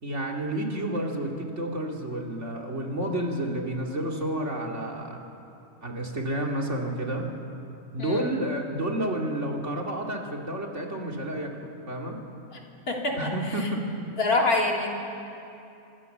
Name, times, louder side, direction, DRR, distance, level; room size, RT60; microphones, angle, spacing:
voice 1, 0.0-5.2 5.8-7.3 7.9-12.2 13.1-13.8, right 1 dB, 55° right, 0 dB, 3.1 m, -30 dB
voice 2, 8.0-8.3 12.5-13.7 14.2-15.0, left 2 dB, 85° left, -1 dB, 3.6 m, -27 dB
28.0 x 25.0 x 6.9 m, 2.8 s
omnidirectional pair, 1.5 m